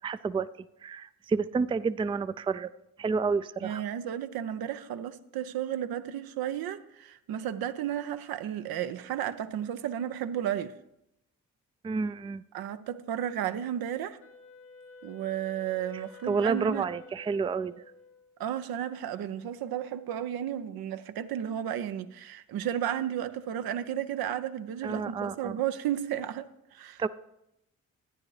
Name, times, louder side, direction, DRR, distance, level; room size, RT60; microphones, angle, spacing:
voice 1, 0.0-0.5 0.8-2.7 3.0-3.8 11.8-12.4 15.9-17.7 24.8-25.6 27.0-27.1, right 5 dB, 15° right, 0.3 m, -30 dB
voice 2, 3.6-10.7 12.5-14.2 15.0-16.8 18.4-27.0, right 10 dB, 75° right, 0.6 m, -33 dB
Wind instrument woodwind instrument, 14.2-18.5, left 2 dB, 80° left, 1.2 m, -52 dB
13.0 x 9.7 x 3.2 m
hypercardioid pair, 45°, 37 cm